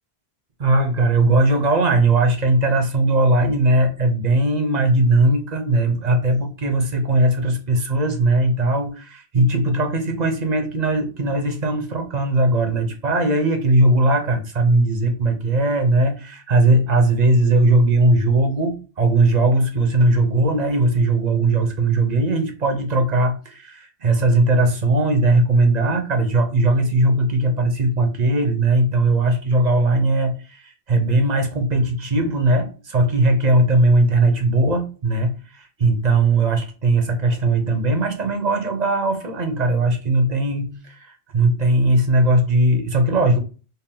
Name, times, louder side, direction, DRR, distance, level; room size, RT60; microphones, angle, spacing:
voice 1, 0.6-43.4, right 2 dB, 45° right, 6 dB, 0.8 m, -19 dB
4.4 x 2.0 x 3.6 m, 0.34 s
omnidirectional pair, 1.1 m